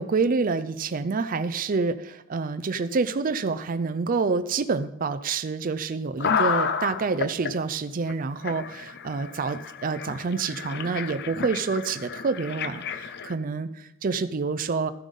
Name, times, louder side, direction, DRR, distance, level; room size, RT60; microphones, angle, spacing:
voice 1, 0.0-14.9, right 4 dB, 40° right, 11 dB, 0.4 m, -27 dB
sound 1, 6.2-7.5 8.1-8.2 8.4-13.3, left 6 dB, 55° left, 0.6 m, -31 dB
13.0 x 7.3 x 5.4 m, 0.83 s
head